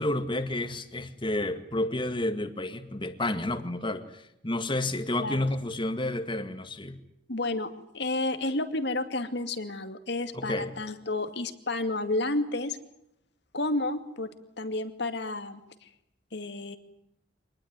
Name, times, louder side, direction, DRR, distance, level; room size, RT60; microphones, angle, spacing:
voice 1, 0.0-7.0 10.3-10.7, left 1 dB, 25° left, 9 dB, 2.0 m, -30 dB
voice 2, 7.3-12.8 13.5-14.3 14.6-15.9 16.3-16.8, left 2 dB, 65° left, 9 dB, 2.3 m, -31 dB
25.0 x 20.0 x 9.6 m, 0.80 s
head